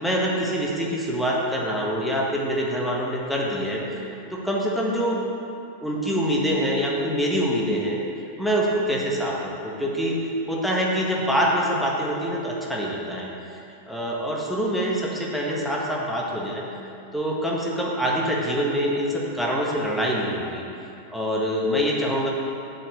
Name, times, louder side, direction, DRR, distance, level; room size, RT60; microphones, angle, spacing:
voice 1, 0.0-5.2 5.8-8.0 8.4-10.2 10.5-13.6 13.9-16.6 17.1-20.6 21.1-22.3, equal, ahead, -4 dB, 1.6 m, -25 dB
7.8 x 7.6 x 6.6 m, 2.7 s
figure-of-eight pair, 90°, 0 cm